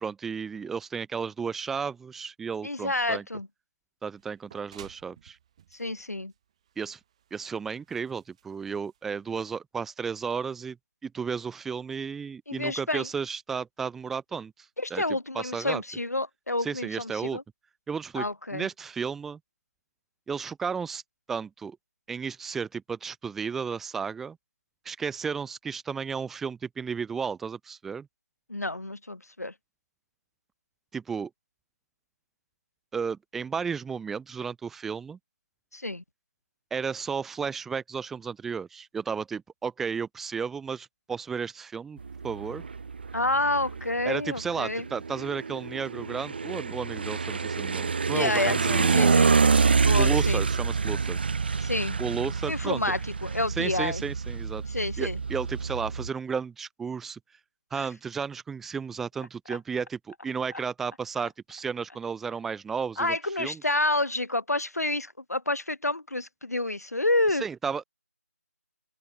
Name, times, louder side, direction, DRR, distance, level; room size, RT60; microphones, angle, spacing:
voice 1, 0.0-3.2 4.0-5.4 6.8-7.0 7.3-10.8 11.0-14.5 14.9-15.0 15.3-15.8 16.6-17.4 17.9-18.3 18.5-19.4 20.3-21.0 21.3-21.8 22.1-24.4 24.8-28.1 30.9-31.3 32.9-35.2 36.7-42.0 42.2-42.7 44.0-49.1 50.0-51.2 52.0-52.9 53.6-54.6 55.0-57.2 57.7-63.6 67.4-67.8, right 6 dB, 5° right, 1.0 m, -33 dB
voice 2, 2.6-3.5 5.7-6.3 12.5-13.1 14.8-17.4 18.1-18.7 28.5-29.5 35.7-36.0 43.1-44.8 48.1-49.3 49.8-50.4 51.6-52.0 52.4-54.0 54.7-55.2 57.7-57.9 63.0-67.4, left 2 dB, 80° left, 1.6 m, -29 dB
sound 1, 4.2-9.5, right 9 dB, 25° right, 7.2 m, -55 dB
sound 2, 42.0-56.1, right 5 dB, 40° right, 2.3 m, -27 dB
open air
figure-of-eight pair, 160°, 8 cm